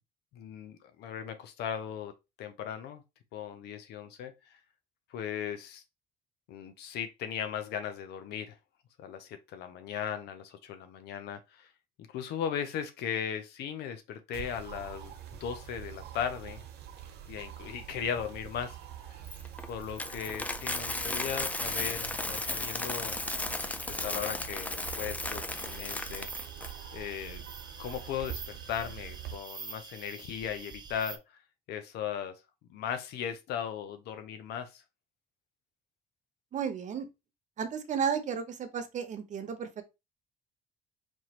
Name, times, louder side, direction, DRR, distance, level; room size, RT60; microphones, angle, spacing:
voice 1, 0.3-2.1 2.4-3.0 3.3-4.6 5.1-5.8 6.5-8.6 9.0-11.7 12.1-15.1 15.4-16.6 17.3-18.8 19.7-23.1 23.9-26.3 26.9-27.4 27.8-31.2 31.7-32.4 32.7-34.8, left 8 dB, 80° left, 0.7 m, -37 dB
sound 1, 14.3-29.4, right 10 dB, 75° right, 1.0 m, -45 dB
Coin (dropping), 19.3-26.7, left 2 dB, 10° left, 0.4 m, -35 dB
sound 2, 25.5-31.2, right 5 dB, 25° right, 0.7 m, -46 dB
voice 2, 36.5-37.0 37.6-39.8, right 7 dB, 45° right, 0.9 m, -33 dB
4.4 x 3.0 x 2.9 m
cardioid pair, 110°, 17 cm